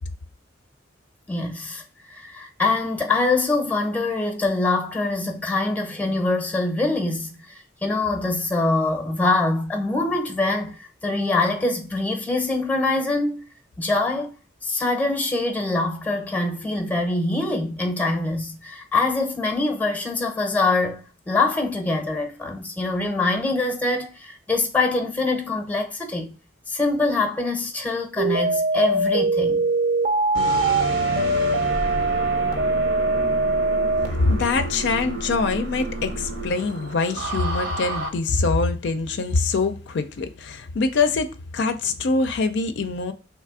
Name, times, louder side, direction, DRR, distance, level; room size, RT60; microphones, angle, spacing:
voice 1, 1.3-1.8 2.1-13.4 13.8-14.3 14.6-26.4 26.7-29.7, left 2 dB, 10° left, 0.7 m, -24 dB
sound 1, 28.2-34.1, right 2 dB, 45° right, 0.6 m, -22 dB
sound 2, 30.3-38.1, right 2 dB, 75° right, 1.0 m, -30 dB
voice 2, 34.1-41.3 41.5-43.1, left 3 dB, 65° left, 0.4 m, -24 dB
3.3 x 3.1 x 4.7 m
head